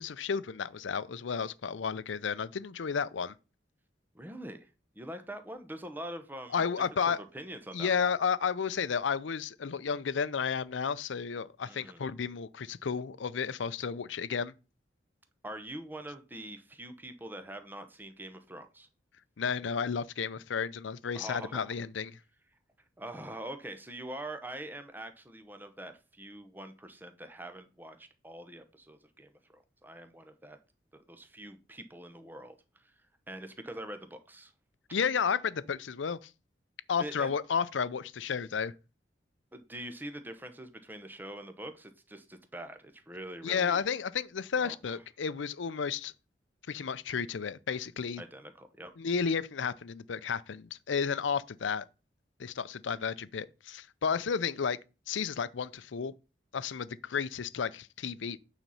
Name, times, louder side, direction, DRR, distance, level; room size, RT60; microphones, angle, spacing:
voice 1, 0.0-3.3 6.5-7.2 7.7-14.5 19.4-22.2 34.9-36.3 36.9-38.7 43.4-46.1 46.7-48.2 49.0-51.9 52.4-54.8 55.1-56.1 56.5-58.4, left 6 dB, 85° left, 0.5 m, -32 dB
voice 2, 4.1-6.7 7.1-8.1 11.6-12.1 15.4-18.9 21.1-21.7 23.0-30.6 30.9-34.5 37.0-37.3 39.5-43.8 44.5-44.8 48.2-48.9, right 1 dB, 10° right, 0.8 m, -44 dB
9.0 x 4.1 x 5.5 m
head